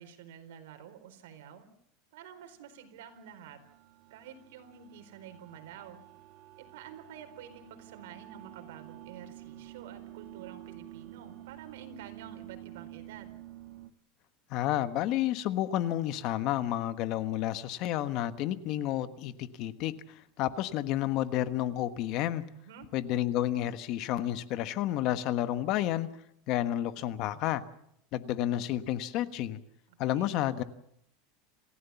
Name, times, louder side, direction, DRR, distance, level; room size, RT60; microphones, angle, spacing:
voice 1, 0.0-1.7 2.1-3.6 4.1-6.0 6.6-13.4 22.5-22.9 29.9-30.4, right 8 dB, 80° right, 7 dB, 4.4 m, -49 dB
sound 1, 2.5-13.9, right 15 dB, 55° right, 1.2 m, -50 dB
voice 2, 14.5-19.9 20.4-22.4 22.9-26.1 26.5-27.6 28.1-29.6 30.0-30.6, left 13 dB, 45° left, 12 dB, 1.3 m, -30 dB
27.5 x 15.5 x 7.1 m, 0.72 s
supercardioid pair, 150°, 0 cm